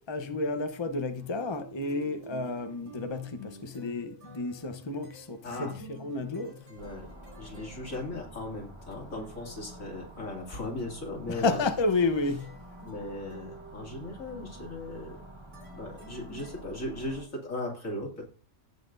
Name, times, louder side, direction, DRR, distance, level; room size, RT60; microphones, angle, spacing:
voice 1, 0.0-6.7 11.3-12.6, left 3 dB, 25° left, 0.8 m, -31 dB
sound 1, 1.1-16.6, right 3 dB, 65° right, 4.8 m, -51 dB
voice 2, 5.4-5.7 6.7-11.6 12.8-15.2 15.7-18.2, left 2 dB, 90° left, 3.0 m, -38 dB
sound 2, 6.8-17.2, right 1 dB, 25° right, 1.4 m, -48 dB
17.0 x 5.9 x 2.6 m
omnidirectional pair, 1.4 m